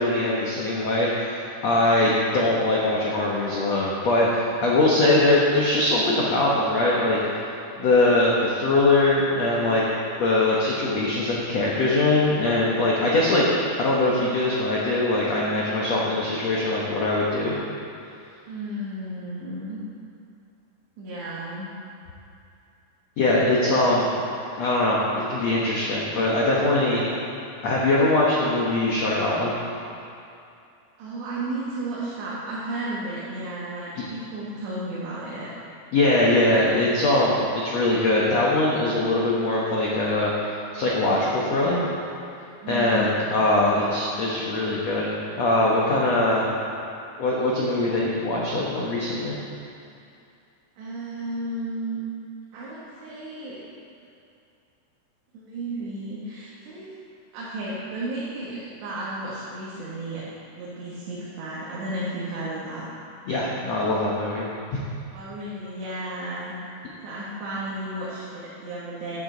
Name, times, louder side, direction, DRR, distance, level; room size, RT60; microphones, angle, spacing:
voice 1, 0.0-7.2 7.8-9.8 10.2-17.6 23.2-24.1 24.6-27.1 27.6-29.5 35.9-40.3 40.7-41.8 42.7-45.1 45.4-46.5 47.2-49.4 63.3-64.8, left 2 dB, 75° left, -5 dB, 1.5 m, -22 dB
voice 2, 1.9-2.4 7.7-8.1 18.5-19.8 21.0-21.7 31.0-35.5 42.6-43.6 50.8-52.0 52.5-53.6 55.3-56.9 57.3-60.2 60.5-62.9 65.1-66.6 67.0-69.2, right 1 dB, 75° right, -8 dB, 3.8 m, -33 dB
15.0 x 10.5 x 4.0 m, 2.5 s
omnidirectional pair, 5.1 m